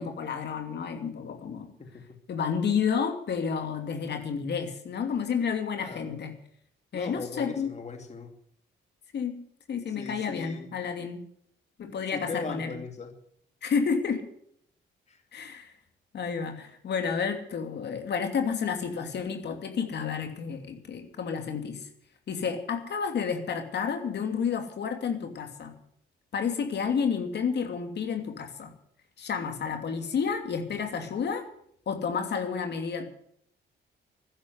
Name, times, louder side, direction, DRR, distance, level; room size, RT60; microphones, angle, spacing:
voice 1, 0.0-1.7 2.3-6.3 6.9-7.7 9.1-9.3 9.7-11.2 11.8-12.8 13.6-14.2 15.3-15.7 16.1-21.9 22.3-25.7 26.3-28.7 29.2-31.4 31.9-33.1, left 6 dB, 60° left, 5 dB, 2.8 m, -30 dB
voice 2, 5.8-6.1 6.9-8.3 10.0-10.9 12.1-13.1 15.1-15.2, left 4 dB, 35° left, 5 dB, 2.5 m, -39 dB
13.0 x 11.0 x 9.5 m, 0.68 s
cardioid pair, 90°, 20 cm